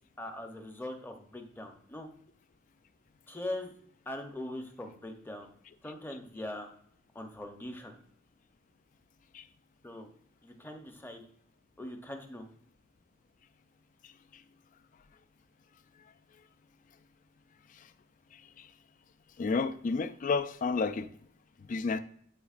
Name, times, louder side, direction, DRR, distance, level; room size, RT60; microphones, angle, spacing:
voice 1, 0.2-2.1 3.3-3.7 4.1-5.5 5.8-6.7 7.1-8.0 9.8-10.1 10.4-11.2 11.8-12.4, left 1 dB, 10° left, 0.8 m, -41 dB
voice 2, 19.4-21.1 21.7-22.0, left 4 dB, 40° left, 0.3 m, -30 dB
9.9 x 4.1 x 2.5 m
head